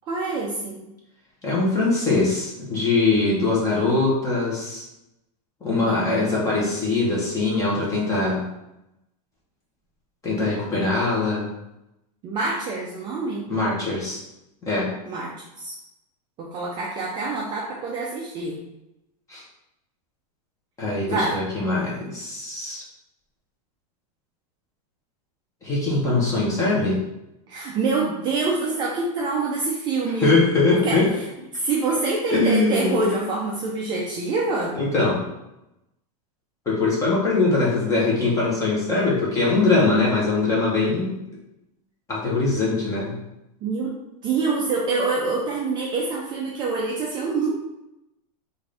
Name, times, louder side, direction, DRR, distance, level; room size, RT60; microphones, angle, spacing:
voice 1, 0.1-0.8 5.9-6.0 12.2-13.5 15.1-15.7 16.4-18.6 21.1-21.4 27.5-30.3 30.8-31.2 31.5-34.8 43.6-44.0 44.2-47.5, right 3 dB, 20° right, -3 dB, 0.4 m, -26 dB
voice 2, 1.4-4.8 5.6-8.4 10.2-11.5 13.5-14.2 14.6-14.9 19.3-19.4 20.8-22.8 25.6-27.0 30.2-31.1 32.3-33.2 34.7-35.2 36.7-41.2 42.1-43.2, left 3 dB, 15° left, -5 dB, 1.0 m, -22 dB
3.5 x 2.6 x 3.3 m, 0.89 s
supercardioid pair, 150°, 21 cm